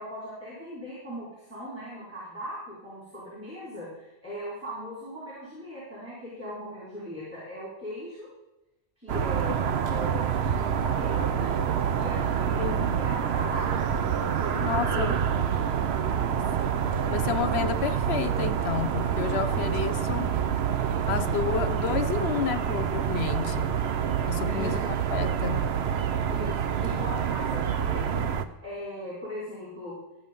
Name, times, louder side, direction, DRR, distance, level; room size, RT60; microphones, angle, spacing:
voice 1, 0.0-8.3 9.0-13.9 14.3-15.2 16.0-16.3 24.4-24.9 26.3-28.3 28.6-30.0, equal, 15° right, 4.6 m, -39 dB
sound 1, 9.1-28.4, right 8 dB, 90° right, 1.0 m, -27 dB
voice 2, 14.6-15.2 16.6-16.7 17.1-20.3 21.1-23.7 24.3-24.8 25.1-25.6, left 8 dB, 90° left, 0.9 m, -31 dB
13.5 x 8.1 x 5.3 m
omnidirectional pair, 1.0 m